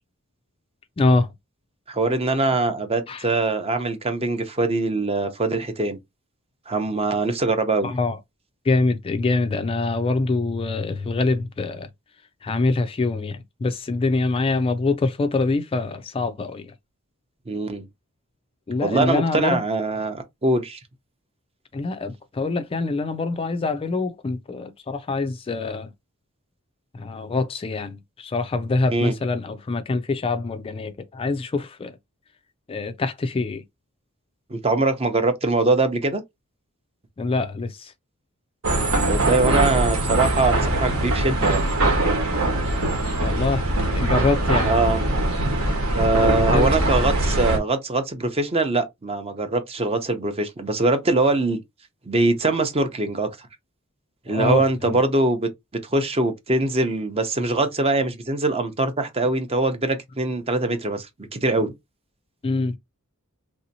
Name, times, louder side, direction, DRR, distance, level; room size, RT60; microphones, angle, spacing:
voice 1, 1.0-1.3 3.1-3.3 7.8-8.2 8.6-11.9 12.4-16.7 18.7-19.6 21.7-25.9 26.9-32.0 32.7-33.6 37.2-37.9 43.2-44.7 46.3-46.7 54.3-55.0 62.4-62.8, left 3 dB, 25° left, 0.3 m, -25 dB
voice 2, 1.9-6.0 6.7-7.9 17.5-17.9 18.8-20.8 28.9-29.1 34.5-36.2 39.1-41.7 44.6-45.0 45.9-51.6 52.1-53.5 54.3-61.1 61.3-61.7, right 2 dB, 25° right, 0.6 m, -23 dB
sound 1, 38.6-47.6, right 2 dB, 70° right, 1.3 m, -22 dB
3.3 x 2.8 x 2.7 m
head